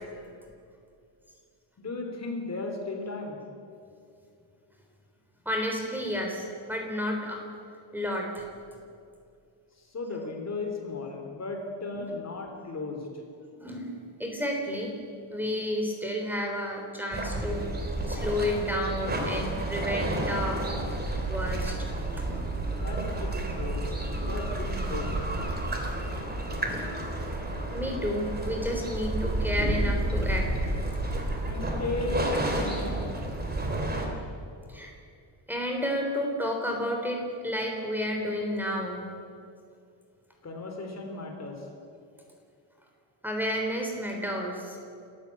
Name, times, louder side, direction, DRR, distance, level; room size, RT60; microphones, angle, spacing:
voice 1, 1.8-3.4 9.8-13.1 22.8-23.8 24.2-25.1 31.5-33.2 40.4-41.7, left 3 dB, 35° left, 2 dB, 3.4 m, -35 dB
voice 2, 5.5-7.4 7.9-8.5 11.9-12.0 13.6-13.9 14.2-14.9 15.3-17.7 18.1-20.7 21.3-21.8 22.2-22.3 27.7-30.7 31.3-31.4 32.7-32.9 33.9-34.0 34.7-34.9 35.5-39.0 43.2-44.8, equal, 5° right, 1 dB, 3.7 m, -31 dB
sound 1, 17.1-34.1, right 1 dB, 20° right, 3.3 m, -30 dB
29.0 x 14.5 x 8.6 m, 2.5 s
wide cardioid pair, 165°, 48 cm